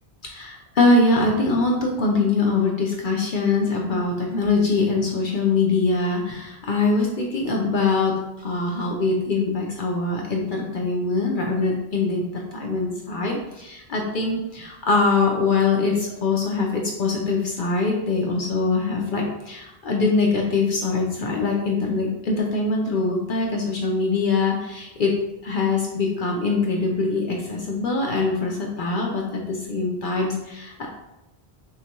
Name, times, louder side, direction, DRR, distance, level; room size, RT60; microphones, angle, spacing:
voice 1, 0.2-25.1 25.4-30.9, left 3 dB, 60° left, -1 dB, 0.7 m, -23 dB
5.8 x 2.2 x 2.9 m, 0.93 s
omnidirectional pair, 1.1 m